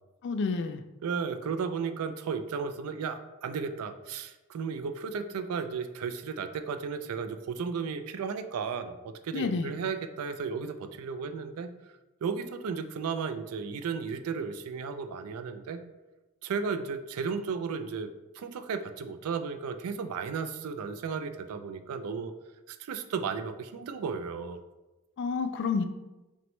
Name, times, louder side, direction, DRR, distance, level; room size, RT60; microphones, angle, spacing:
voice 1, 0.2-0.8 9.3-9.7 25.2-25.9, left 4 dB, 55° left, 9 dB, 0.3 m, -29 dB
voice 2, 1.0-11.7 12.2-15.8 16.4-18.1 18.3-22.3 22.7-24.6, right 5 dB, 75° right, 9 dB, 0.4 m, -34 dB
5.9 x 2.2 x 3.0 m, 1.1 s
head